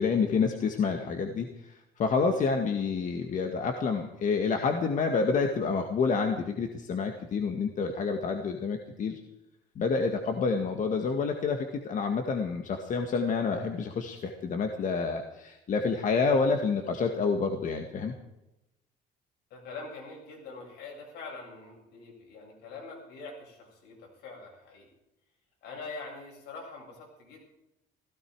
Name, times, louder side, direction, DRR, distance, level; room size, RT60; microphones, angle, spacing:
voice 1, 0.0-9.2 9.8-18.1, left 5 dB, 50° left, 5 dB, 1.8 m, -28 dB
voice 2, 19.5-24.9 25.6-27.4, left 3 dB, 80° left, -1 dB, 7.9 m, -44 dB
16.5 x 16.5 x 4.8 m, 0.92 s
cardioid pair, 110°, 17 cm